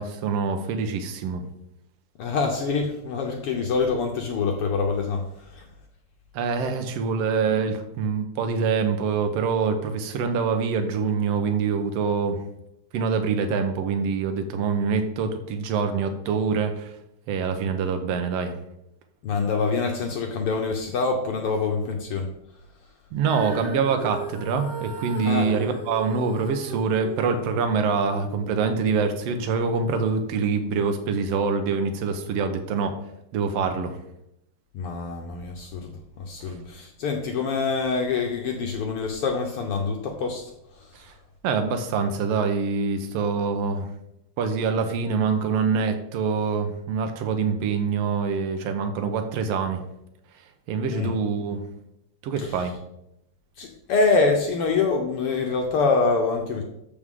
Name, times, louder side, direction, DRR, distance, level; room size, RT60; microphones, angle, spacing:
voice 1, 0.0-1.5 6.3-12.4 12.9-16.9 17.3-18.5 23.1-33.0 33.3-34.0 41.4-43.9 44.4-49.8 50.7-51.6 52.2-52.8, right 5 dB, 65° right, 6 dB, 1.8 m, -25 dB
voice 2, 2.2-5.6 19.2-22.3 25.2-25.5 34.7-40.9 50.9-51.1 52.4-52.6 53.6-56.6, left 4 dB, 70° left, 2 dB, 1.4 m, -25 dB
Female singing, 23.2-29.5 30.2-30.3, right 3 dB, 30° right, 2.9 m, -37 dB
13.5 x 4.9 x 3.7 m, 0.81 s
omnidirectional pair, 3.4 m